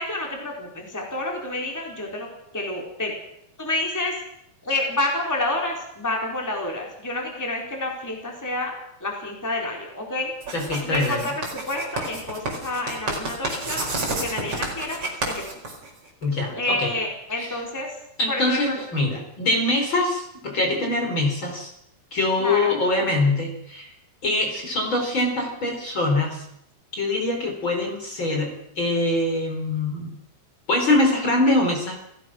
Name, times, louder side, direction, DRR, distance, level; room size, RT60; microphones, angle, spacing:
voice 1, 0.0-2.3 2.5-3.1 3.6-4.1 4.6-8.7 9.0-10.3 10.8-15.0 15.2-15.4 16.5-17.9 18.3-18.8 22.4-22.7, left 2 dB, 5° left, 0 dB, 4.1 m, -29 dB
Writing, 10.4-16.2, right 2 dB, 50° right, 6.0 m, -30 dB
voice 2, 10.5-11.3 16.2-16.9 17.4-17.6 18.2-21.7 22.1-23.9 24.2-26.4 27.0-30.1 30.7-32.0, left 2 dB, 40° left, 2 dB, 4.9 m, -23 dB
29.0 x 16.5 x 6.3 m, 0.76 s
omnidirectional pair, 3.5 m